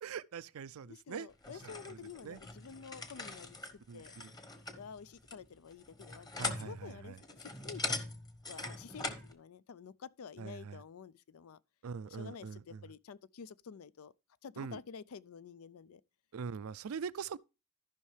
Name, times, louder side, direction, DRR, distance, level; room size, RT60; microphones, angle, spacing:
voice 1, 0.0-1.3 1.6-2.4 3.9-4.3 6.4-7.2 10.4-10.8 11.8-12.8 14.6-14.8 16.3-17.4, right 6 dB, 70° right, 0.4 m, -43 dB
voice 2, 0.9-3.6 3.9-4.1 4.7-8.1 8.5-11.6 12.0-14.1 14.4-16.0, left 6 dB, 75° left, 0.4 m, -50 dB
sound 1, 1.4-9.3, left 3 dB, 20° left, 1.1 m, -42 dB
14.0 x 5.5 x 3.2 m
head